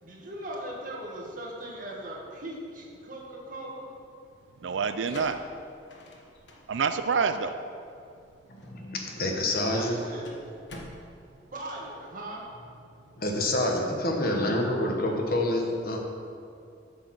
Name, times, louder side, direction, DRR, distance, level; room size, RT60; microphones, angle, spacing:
voice 1, 0.0-3.9 9.7-10.4 11.5-12.4, right 1 dB, 45° right, -3 dB, 2.0 m, -39 dB
voice 2, 4.6-5.4 6.7-7.5, right 5 dB, 90° right, 9 dB, 0.5 m, -27 dB
sound 1, 5.0-12.4, left 1 dB, 70° left, 1.2 m, -49 dB
voice 3, 8.5-10.0 13.2-16.0, left 1 dB, 50° left, 2 dB, 1.2 m, -27 dB
8.2 x 6.9 x 6.3 m, 2.4 s
head